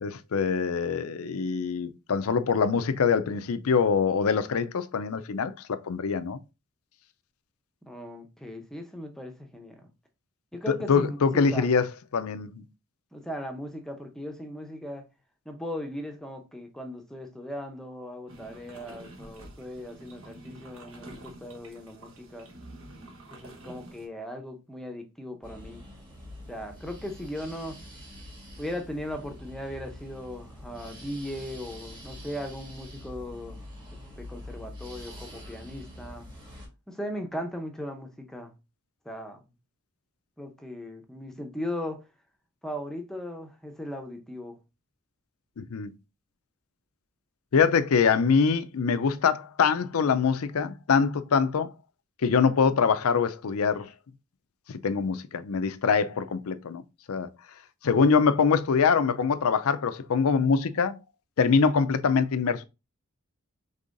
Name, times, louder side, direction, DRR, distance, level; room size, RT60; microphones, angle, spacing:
voice 1, 0.0-6.4 10.7-12.5 45.6-45.9 47.5-51.7 52.2-53.9 54.7-56.8 57.1-57.3 57.8-61.0 61.4-62.6, left 5 dB, 70° left, 0.5 m, -24 dB
voice 2, 7.8-9.9 10.5-11.7 13.1-15.0 15.5-22.5 23.3-25.8 26.5-27.8 28.6-33.6 33.9-36.3 36.9-38.5 39.0-39.4 40.4-42.0 42.6-44.6, left 1 dB, ahead, 0.7 m, -38 dB
sound 1, 18.3-24.1, right 2 dB, 65° right, 1.2 m, -48 dB
sound 2, 25.4-36.7, left 1 dB, 20° right, 1.4 m, -45 dB
5.4 x 3.5 x 2.5 m
head